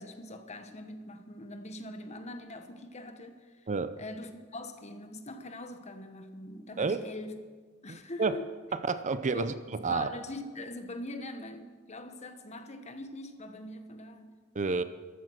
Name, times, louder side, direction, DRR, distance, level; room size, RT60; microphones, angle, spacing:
voice 1, 0.0-3.7 4.0-7.4 7.8-8.5 9.3-9.6 9.9-14.4, left 2 dB, 30° left, 8 dB, 1.1 m, -42 dB
voice 2, 7.9-8.4 8.7-10.1 14.5-14.8, right 4 dB, 35° right, 12 dB, 0.5 m, -30 dB
14.0 x 13.0 x 6.4 m, 1.4 s
head